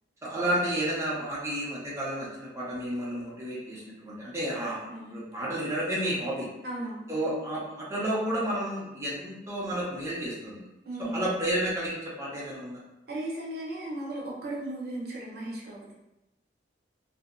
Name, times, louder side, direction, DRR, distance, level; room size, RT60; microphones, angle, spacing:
voice 1, 0.2-6.5 7.1-10.6 11.0-12.8, right 1 dB, 15° right, -7 dB, 0.5 m, -31 dB
voice 2, 6.6-7.1 10.8-11.3 13.1-15.9, right 1 dB, 65° right, -4 dB, 0.7 m, -36 dB
2.7 x 2.0 x 2.4 m, 0.93 s
head